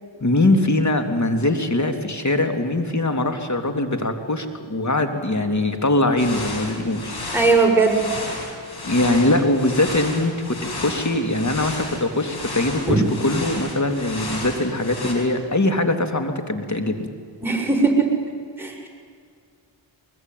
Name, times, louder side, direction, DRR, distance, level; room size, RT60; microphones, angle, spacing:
voice 1, 0.2-7.4 8.8-17.1, left 2 dB, 40° left, 7 dB, 3.3 m, -22 dB
sound 1, 6.2-15.1, left 2 dB, 55° left, 6.6 m, -33 dB
voice 2, 7.3-8.0 12.9-13.1 17.4-18.1 18.6-18.9, right 3 dB, 5° right, 0 dB, 6.9 m, -18 dB
23.5 x 21.5 x 9.4 m, 2.1 s
cardioid pair, 50°, 46 cm